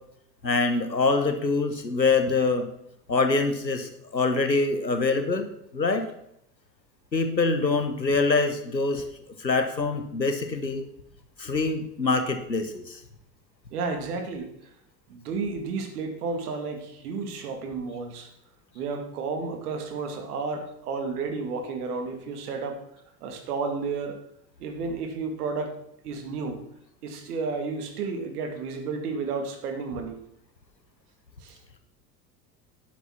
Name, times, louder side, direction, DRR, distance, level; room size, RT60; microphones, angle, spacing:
voice 1, 0.4-2.7 3.1-5.5 5.7-6.1 7.1-9.0 9.4-10.8 11.4-13.0, left 3 dB, 90° left, 7 dB, 1.4 m, -24 dB
voice 2, 13.7-14.5 15.1-18.3 18.7-22.8 23.2-24.2 24.6-25.8 26.0-26.6 27.0-30.2 31.4-31.6, right 4 dB, 65° right, 5 dB, 2.4 m, -32 dB
11.0 x 7.4 x 5.8 m, 0.75 s
figure-of-eight pair, 75°, 50 cm